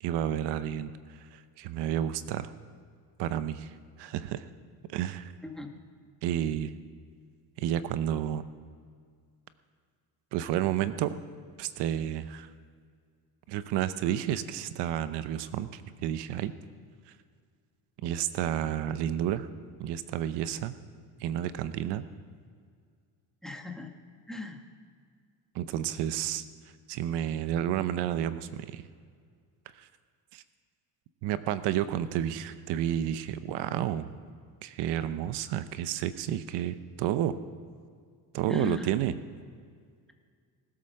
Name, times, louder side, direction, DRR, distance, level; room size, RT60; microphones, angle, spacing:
voice 1, 0.0-2.5 3.2-4.4 4.9-5.3 6.2-6.8 7.6-8.5 10.3-11.1 11.6-12.5 13.5-16.5 18.0-19.5 19.8-20.7 21.2-22.0 25.5-26.4 26.9-28.8 29.8-29.9 30.3-30.4 31.2-34.1 34.6-37.3 38.3-39.1, right 11 dB, 85° right, 13 dB, 0.8 m, -31 dB
voice 2, 23.4-23.9 24.3-24.6 38.5-38.9, left 3 dB, ahead, 4 dB, 1.4 m, -37 dB
19.5 x 8.8 x 6.5 m, 2.1 s
cardioid pair, 135°, 40 cm